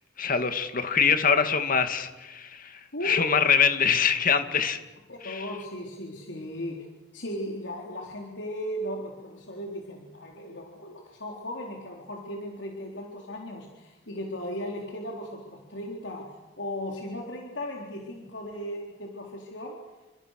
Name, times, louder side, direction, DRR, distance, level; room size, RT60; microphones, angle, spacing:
voice 1, 0.2-4.8 5.2-5.4, left 6 dB, 50° left, 8 dB, 2.3 m, -24 dB
voice 2, 2.9-3.3 5.1-6.9 7.1-19.8, equal, 80° left, 0 dB, 3.8 m, -36 dB
30.0 x 26.5 x 6.7 m, 1.1 s
head